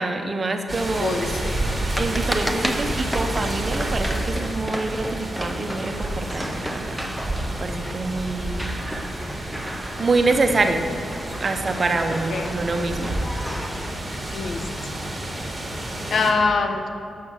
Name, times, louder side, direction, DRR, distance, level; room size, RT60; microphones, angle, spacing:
voice 1, 0.0-1.3 1.9-7.1 7.5-8.6 8.9-9.5 10.0-10.9 11.4-13.1, right 3 dB, 40° right, 5 dB, 0.7 m, -26 dB
sound 1, 0.7-16.3, right 1 dB, 20° right, 1.5 m, -30 dB
sound 2, 0.8-13.9, equal, 5° left, 0.8 m, -34 dB
voice 2, 1.0-1.7 12.3-12.5 14.3-14.6 16.1-16.9, left 4 dB, 65° left, 6 dB, 0.6 m, -24 dB
6.6 x 5.8 x 6.3 m, 2.5 s
cardioid pair, 60°, 0 cm